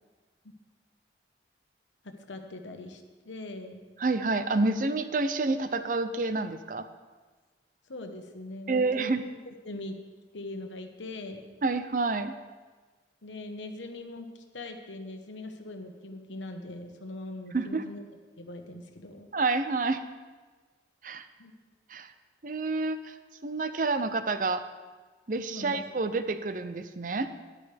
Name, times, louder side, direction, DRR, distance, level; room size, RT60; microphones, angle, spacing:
voice 1, 2.0-3.8 7.9-9.1 9.5-10.0 10.3-11.4 13.2-18.0 18.4-19.3 21.4-21.5 25.5-26.0, left 2 dB, 90° left, 5 dB, 1.2 m, -41 dB
voice 2, 4.0-6.9 8.7-9.2 11.6-12.3 17.5-17.8 19.3-20.0 21.0-21.3 21.9-22.1 22.4-23.2 23.4-24.6 25.3-27.3, right 3 dB, 45° right, 10 dB, 0.5 m, -28 dB
13.5 x 11.0 x 3.5 m, 1.4 s
head